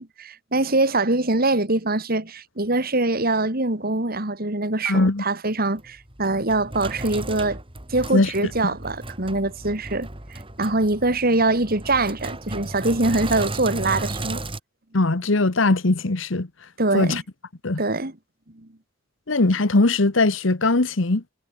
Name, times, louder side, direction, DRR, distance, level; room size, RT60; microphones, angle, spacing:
voice 1, 0.0-7.6 7.9-14.4 16.8-17.2 17.8-18.1 18.5-18.7, right 2 dB, 50° right, 3.2 m, -23 dB
voice 2, 4.9-5.2 8.1-8.3 8.6-8.7 14.9-16.5 16.9-17.2 17.6-17.8 19.3-21.2, left 2 dB, 70° left, 1.3 m, -20 dB
Sink (filling or washing), 5.8-14.6, right 2 dB, 25° right, 4.3 m, -34 dB
head